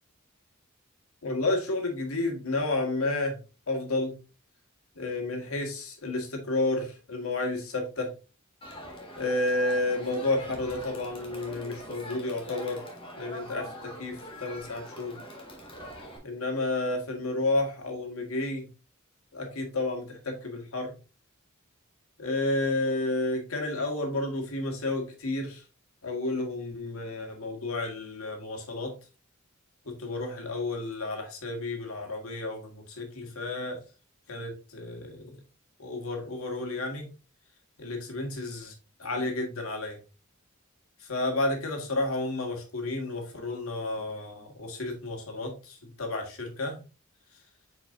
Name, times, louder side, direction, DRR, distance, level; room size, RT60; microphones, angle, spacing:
voice 1, 1.2-3.4 3.7-4.1 5.0-8.1 9.2-12.8 13.2-15.2 16.2-18.6 19.3-21.0 22.2-25.6 26.0-28.9 29.9-33.8 34.3-35.4 35.8-37.1 37.8-38.7 39.0-40.0 41.0-46.8, left 2 dB, 85° left, 3 dB, 1.9 m, -31 dB
Crowd, 8.6-16.2, right 1 dB, 25° left, 1.8 m, -43 dB
8.1 x 4.7 x 2.6 m, 0.32 s
head